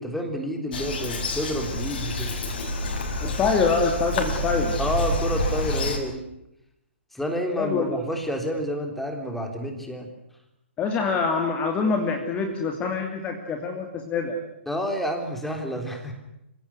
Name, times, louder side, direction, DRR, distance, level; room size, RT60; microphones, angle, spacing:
voice 1, 0.0-2.3 4.8-6.2 7.1-10.1 14.7-16.1, equal, ahead, 4 dB, 3.6 m, -29 dB
Bird vocalization bird call bird song, 0.7-6.0, left 1 dB, 50° left, 6.3 m, -28 dB
voice 2, 3.2-4.7 7.5-8.0 10.8-14.4, left 4 dB, 20° left, 4 dB, 2.8 m, -25 dB
27.5 x 17.0 x 9.7 m, 0.84 s
figure-of-eight pair, 125°, 7 cm